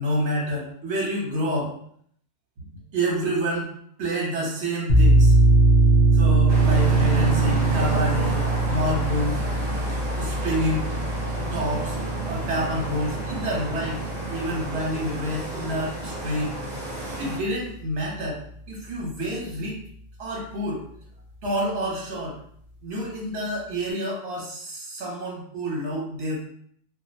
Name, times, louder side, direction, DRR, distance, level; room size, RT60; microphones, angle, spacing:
voice 1, 0.0-1.7 2.6-2.7 2.9-3.7 4.0-5.3 6.1-8.4 8.7-9.4 10.2-10.9 11.3-12.0 12.3-14.0 14.3-16.6 17.1-18.4 18.7-19.8 20.2-20.8 21.4-22.4 22.8-26.4, equal, 65° right, -4 dB, 1.2 m, -28 dB
sound 1, 4.9-16.2, right 2 dB, 45° left, 0.7 m, -21 dB
sound 2, 6.5-17.4, right 1 dB, 40° right, 0.9 m, -32 dB
2.5 x 2.3 x 2.7 m, 0.64 s
omnidirectional pair, 1.3 m